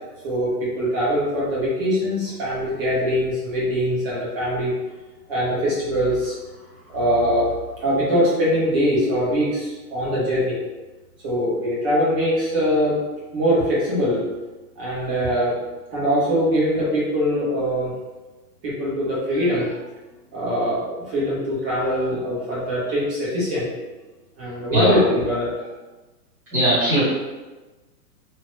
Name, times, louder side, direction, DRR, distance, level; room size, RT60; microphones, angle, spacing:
voice 1, 0.2-4.7 5.3-6.3 6.9-7.5 7.8-10.6 11.2-13.0 13.3-14.2 14.8-15.5 15.9-17.9 18.6-19.7 20.3-23.7 24.4-25.5, equal, 35° right, -8 dB, 1.3 m, -22 dB
voice 2, 26.5-27.0, right 1 dB, 5° right, -17 dB, 0.9 m, -19 dB
3.0 x 2.3 x 3.1 m, 1.2 s
hypercardioid pair, 155°, 49 cm